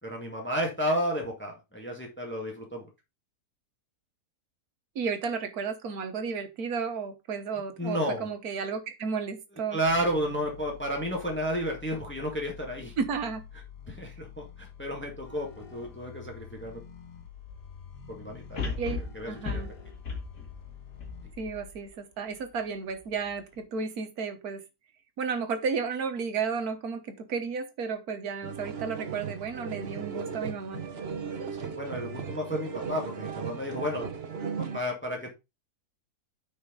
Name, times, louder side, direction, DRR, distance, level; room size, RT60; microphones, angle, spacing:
voice 1, 0.0-2.9 7.8-8.3 9.7-12.9 13.9-16.8 18.1-18.8 19.1-19.6 31.6-35.3, equal, 5° left, 1 dB, 1.7 m, -32 dB
voice 2, 4.9-9.8 13.0-13.4 18.8-19.0 19.3-19.7 21.4-24.6 25.2-30.8, right 5 dB, 65° right, 8 dB, 1.7 m, -33 dB
sound 1, 9.8-21.7, left 8 dB, 90° left, 1.9 m, -48 dB
sound 2, 16.8-16.9 18.6-21.9 22.4-22.5, left 4 dB, 70° left, 2.5 m, -36 dB
sound 3, 28.4-34.8, right 6 dB, 45° right, 1.0 m, -36 dB
9.4 x 5.4 x 3.8 m, 0.25 s
omnidirectional pair, 1.7 m